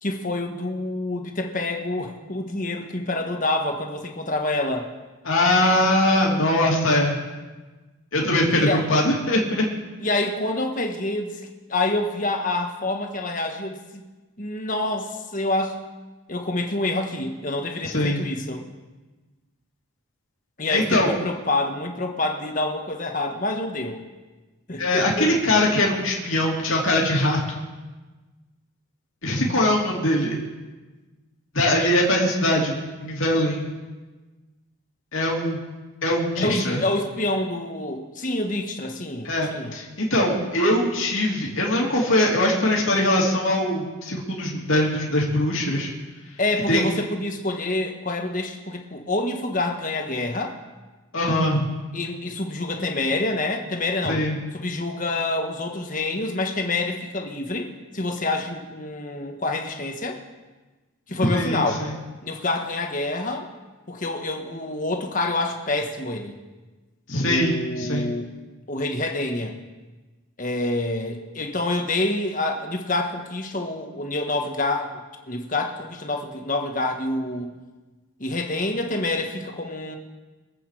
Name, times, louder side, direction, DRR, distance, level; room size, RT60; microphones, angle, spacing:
voice 1, 0.0-4.9 8.5-8.8 10.0-11.4 11.7-14.1 14.4-15.8 16.3-18.6 20.6-24.0 24.7-25.3 36.4-39.7 46.4-50.6 51.9-54.3 54.5-60.2 61.1-61.9 62.2-63.5 63.9-66.4 67.2-68.3 68.7-69.6 70.4-77.5 78.2-80.0, left 2 dB, 35° left, 3 dB, 1.5 m, -27 dB
voice 2, 5.2-7.2 8.1-9.7 17.8-18.2 20.7-21.1 24.8-27.4 29.2-30.4 31.5-33.7 35.1-35.6 36.0-36.8 39.2-45.9 46.7-46.8 51.1-51.7 54.0-54.4 61.2-61.9 67.1-68.1, left 1 dB, 65° left, -3 dB, 2.8 m, -22 dB
24.0 x 8.6 x 4.9 m, 1.2 s
head